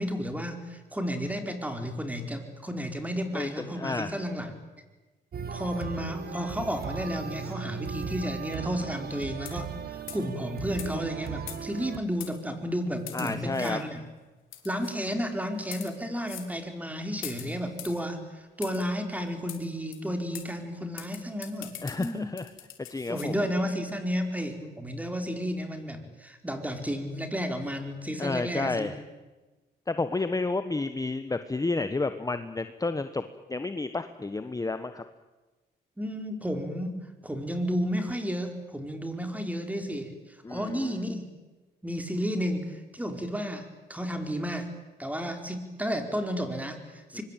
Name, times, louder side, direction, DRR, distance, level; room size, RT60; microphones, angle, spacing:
voice 1, 0.0-4.5 5.5-14.0 14.6-18.2 18.6-21.7 22.0-22.3 23.1-28.9 36.0-40.1 40.5-41.2 41.8-44.7 45.0-47.2, equal, 5° right, 5 dB, 4.6 m, -32 dB
voice 2, 3.3-4.2 13.1-13.8 21.8-22.5 22.9-23.4 28.2-29.0 29.9-35.0 40.4-41.1 47.1-47.2, left 3 dB, 15° left, 10 dB, 1.2 m, -31 dB
sound 1, 5.3-12.0, right 7 dB, 50° right, 1.8 m, -37 dB
sound 2, 9.4-9.7 10.1-10.3 10.8-10.9 11.5-11.8 12.2-12.3 13.1-13.7 14.5-14.9 15.6-15.9 16.3-16.5 17.2-18.0 18.6-18.8 19.5-19.6 19.9-20.0 20.3-20.5 21.0-23.3, left 11 dB, 85° left, 3.7 m, -42 dB
24.5 x 23.0 x 9.2 m, 1.2 s
cardioid pair, 90°, 20 cm